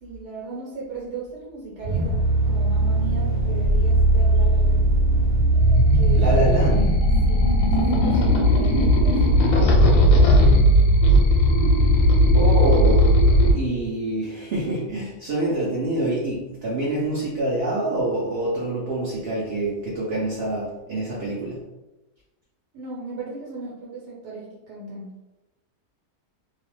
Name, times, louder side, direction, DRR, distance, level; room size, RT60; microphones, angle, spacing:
voice 1, 0.0-2.2 2.5-4.9 5.9-6.4 7.3-10.9 22.7-25.1, right 3 dB, 85° right, -5 dB, 1.3 m, -36 dB
sound 1, 1.8-9.0, right 2 dB, 15° right, 0.5 m, -20 dB
sound 2, 5.6-13.5, equal, 85° left, 1.1 m, -17 dB
voice 2, 6.1-7.0 12.3-13.1 13.5-21.6, right 2 dB, 60° right, -6 dB, 0.6 m, -26 dB
2.8 x 2.0 x 3.0 m, 1.0 s
omnidirectional pair, 1.7 m